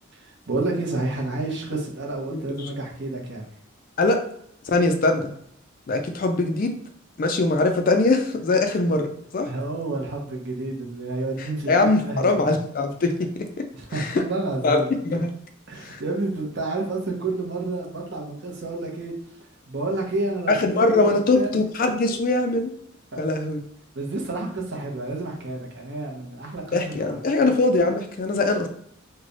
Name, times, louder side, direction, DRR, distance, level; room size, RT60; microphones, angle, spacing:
voice 1, 0.1-3.5 9.5-12.5 13.7-14.9 15.7-19.1 19.7-21.7 23.1-23.2 23.9-27.2, right 2 dB, 55° right, -1 dB, 0.8 m, -30 dB
voice 2, 4.7-5.3 5.9-6.8 7.2-9.5 11.4-13.7 13.9-14.2 14.6-15.3 15.8-16.0 20.5-22.7 23.2-23.6 26.7-28.7, left 2 dB, 40° left, 5 dB, 0.4 m, -22 dB
3.2 x 2.2 x 3.8 m, 0.69 s
head